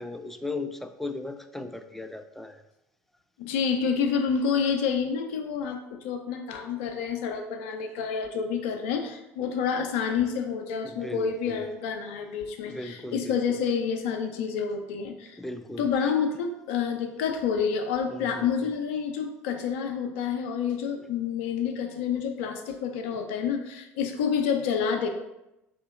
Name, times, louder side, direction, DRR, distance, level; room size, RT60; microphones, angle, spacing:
voice 1, 0.0-2.6 10.8-11.6 12.7-13.6 15.4-16.1 18.1-18.5, left 2 dB, 5° left, 8 dB, 0.3 m, -37 dB
voice 2, 3.4-15.4 15.8-25.1, left 6 dB, 60° left, 5 dB, 0.5 m, -28 dB
3.8 x 2.8 x 3.6 m, 0.91 s
figure-of-eight pair, 65°, 7 cm